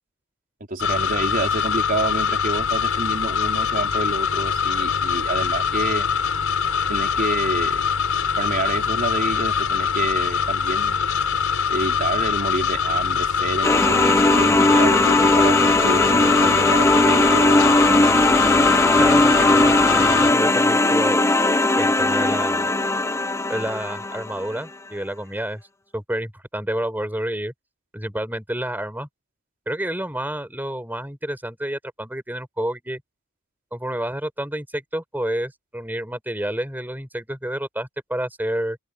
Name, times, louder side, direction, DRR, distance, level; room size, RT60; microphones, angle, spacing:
voice 1, 0.7-6.1 6.9-7.8 8.4-11.0 11.7-17.5, right 2 dB, 40° right, 3.6 m, -28 dB
sound 1, 0.8-20.3, left 6 dB, 75° left, 6.0 m, -23 dB
sound 2, 13.6-24.4, left 2 dB, 15° left, 0.6 m, -18 dB
voice 2, 19.0-21.3 21.8-22.7 23.5-25.6 25.9-27.5 27.9-29.1 29.7-33.0 33.7-38.8, right 1 dB, 10° right, 5.9 m, -29 dB
open air
head